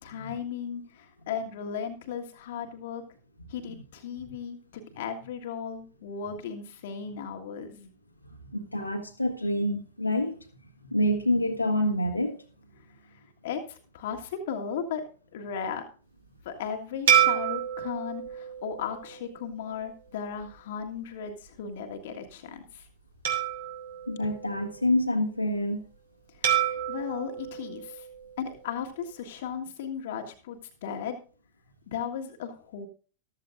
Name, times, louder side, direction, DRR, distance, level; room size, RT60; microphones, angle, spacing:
voice 1, 0.0-3.0 3.5-7.9 13.0-15.0 15.3-15.8 16.4-22.9 26.4-28.1 28.4-31.2 31.9-32.9, left 7 dB, 55° left, 1.6 m, -36 dB
voice 2, 8.5-10.4 10.8-12.4 24.1-25.8, left 1 dB, 90° left, 1.7 m, -27 dB
sound 1, 17.1-19.7 20.3-20.5 23.2-25.0 26.4-28.7, right 10 dB, 60° right, 2.8 m, -29 dB
14.0 x 13.0 x 2.5 m
figure-of-eight pair, 90°, 0 cm